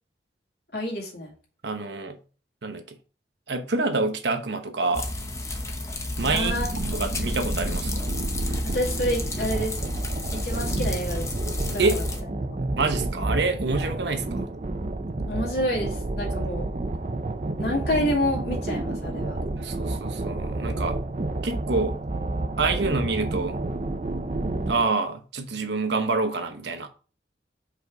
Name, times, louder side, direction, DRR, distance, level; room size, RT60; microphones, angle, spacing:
voice 1, 0.7-1.3 6.3-6.7 8.6-9.8 10.3-11.3 11.7-12.0 12.5-12.6 15.3-16.7 17.6-19.4, left 1 dB, 65° left, 2.2 m, -28 dB
voice 2, 1.6-2.2 2.6-3.0 3.5-5.1 6.2-6.5 6.8-8.1 11.8-12.0 12.8-14.5 19.5-21.0 21.4-22.0 22.6-23.6 24.7-26.9, right 3 dB, 75° right, 0.9 m, -27 dB
sound 1, 4.9-12.2, left 1 dB, 15° left, 0.7 m, -31 dB
sound 2, 6.2-24.9, right 2 dB, 40° right, 0.5 m, -30 dB
5.2 x 4.0 x 4.7 m
head